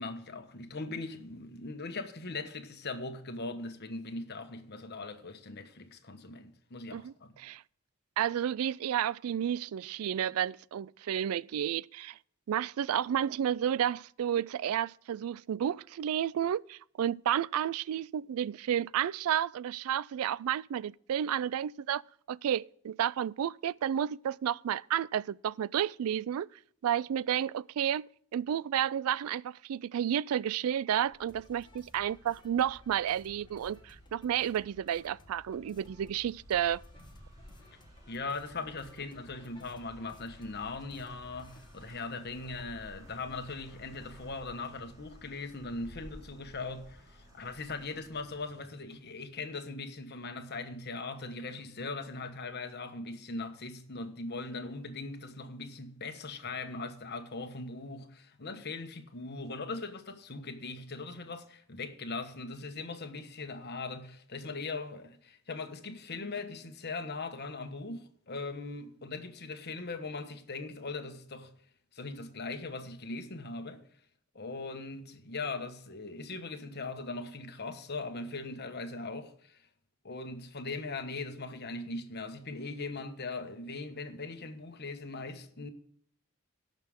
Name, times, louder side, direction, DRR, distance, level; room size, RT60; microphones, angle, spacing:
voice 1, 0.0-7.3 38.1-71.5 71.9-73.8 74.3-79.6 80.0-85.7, left 3 dB, 45° left, 1.3 m, -40 dB
voice 2, 6.9-7.6 8.2-12.2 12.5-22.0 22.3-26.5 26.8-36.8, right 9 dB, 75° right, 0.3 m, -31 dB
sound 1, 31.1-49.2, equal, 20° right, 4.0 m, -55 dB
sound 2, 31.3-41.9, left 1 dB, 20° left, 1.4 m, -58 dB
18.0 x 6.6 x 3.6 m
head